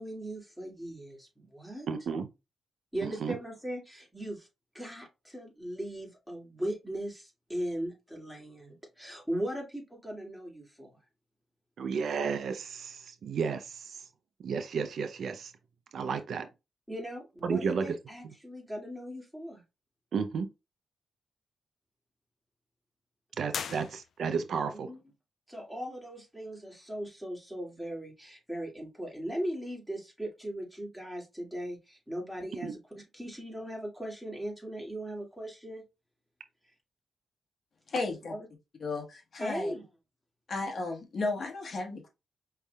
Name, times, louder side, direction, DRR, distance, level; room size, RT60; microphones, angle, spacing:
voice 1, 0.0-1.9 2.9-4.5 4.7-10.9 16.9-19.6 24.7-25.0 25.5-32.8 33.1-35.8 38.3-38.5 39.4-39.9, right 1 dB, ahead, 2.2 m, -38 dB
voice 2, 1.9-2.3 3.0-3.4 11.8-14.0 14.4-15.5 15.9-16.5 17.4-17.9 20.1-20.5 23.4-24.9 32.6-32.7, right 6 dB, 70° right, 0.5 m, -32 dB
sound 1, 23.5-24.5, left 7 dB, 70° left, 0.4 m, -39 dB
voice 3, 37.9-38.3 38.8-39.7 40.5-42.1, left 3 dB, 55° left, 1.3 m, -34 dB
5.4 x 3.3 x 2.3 m
cardioid pair, 85°, 0 cm